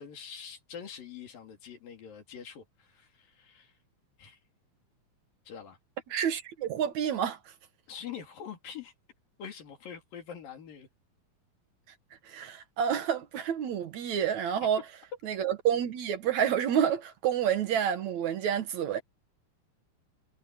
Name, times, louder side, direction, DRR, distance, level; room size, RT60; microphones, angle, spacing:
voice 1, 0.0-3.8 4.2-4.4 5.5-5.8 7.9-8.9 9.4-10.9, left 8 dB, 85° left, 4.8 m, -44 dB
voice 2, 6.1-7.4 12.3-14.8 15.2-19.0, right 8 dB, 60° right, 2.5 m, -29 dB
omnidirectional pair, 3.9 m